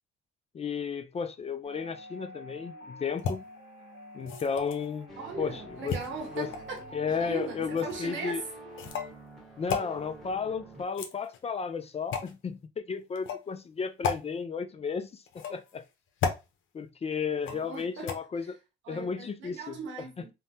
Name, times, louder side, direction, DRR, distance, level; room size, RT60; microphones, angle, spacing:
voice 1, 0.5-3.4 4.1-5.1 5.4-6.0 6.3-6.5 6.9-8.4 9.6-15.8 16.7-18.6 18.9-19.8, left 6 dB, 30° left, 0.4 m, -33 dB
sound 1, 1.6-8.9, left 1 dB, 50° left, 1.7 m, -48 dB
sound 2, 3.2-3.3 4.2-4.9 5.9-6.8 7.8-8.0 8.8-9.1 9.7-9.9 10.8-11.5 12.1-12.3 13.2-13.4 14.0-14.2 15.3-15.7 16.2-16.4 17.4-17.7 18.1-18.2, left 6 dB, 80° left, 0.7 m, -33 dB
sound 3, 5.1-10.8, right 2 dB, ahead, 1.1 m, -49 dB
voice 2, 5.2-6.8 7.1-8.4 17.5-18.5 18.8-20.3, right 4 dB, 75° right, 0.8 m, -39 dB
3.2 x 2.1 x 2.7 m
cardioid pair, 90°, 20 cm